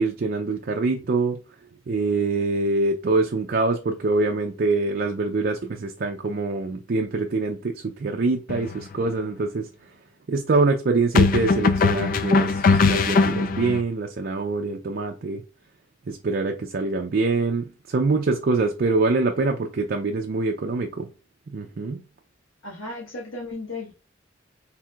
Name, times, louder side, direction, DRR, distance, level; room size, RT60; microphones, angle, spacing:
voice 1, 0.0-1.4 1.9-9.7 10.3-15.4 16.1-21.1 21.5-22.0, right 3 dB, 50° right, 0.4 m, -24 dB
sound 1, 8.5-8.7 11.1-13.8, left 4 dB, 45° left, 0.3 m, -20 dB
voice 2, 22.6-23.9, left 2 dB, 85° left, 1.3 m, -35 dB
4.6 x 3.4 x 2.3 m
head